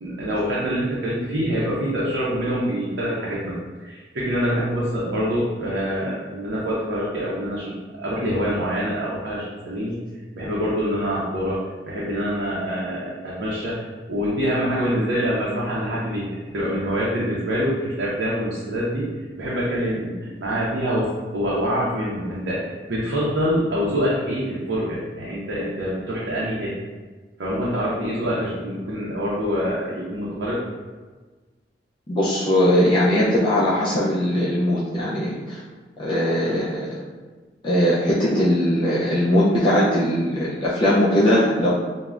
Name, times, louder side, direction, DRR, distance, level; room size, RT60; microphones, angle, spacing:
voice 1, 0.0-10.0 10.4-11.6 11.9-19.1 19.4-26.7 27.4-30.6, equal, 80° right, -6 dB, 0.5 m, -25 dB
voice 2, 32.1-35.6 36.0-37.0 37.6-41.7, equal, 30° left, -8 dB, 0.4 m, -20 dB
3.2 x 2.0 x 2.4 m, 1.3 s
head